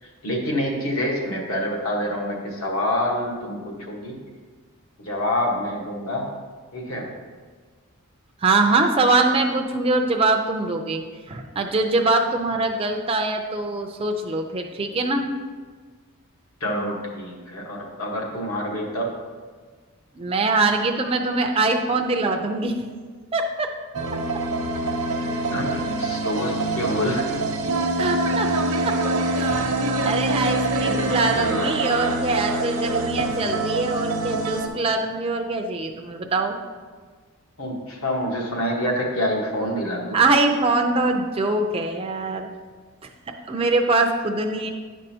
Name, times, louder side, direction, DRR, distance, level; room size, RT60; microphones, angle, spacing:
voice 1, 0.0-4.2 5.0-6.3 6.7-7.1 16.6-19.2 25.5-27.3 30.8-31.7 37.6-40.2, left 1 dB, 70° left, -1 dB, 1.3 m, -27 dB
voice 2, 8.4-15.3 20.2-22.7 23.3-23.7 28.0-28.5 28.9-29.0 29.3-29.7 30.0-36.6 40.1-42.5 43.5-44.7, right 3 dB, 25° right, 3 dB, 0.4 m, -23 dB
sound 1, 23.9-34.7, right 2 dB, 75° right, 0.7 m, -25 dB
9.8 x 5.4 x 2.8 m, 1.5 s
head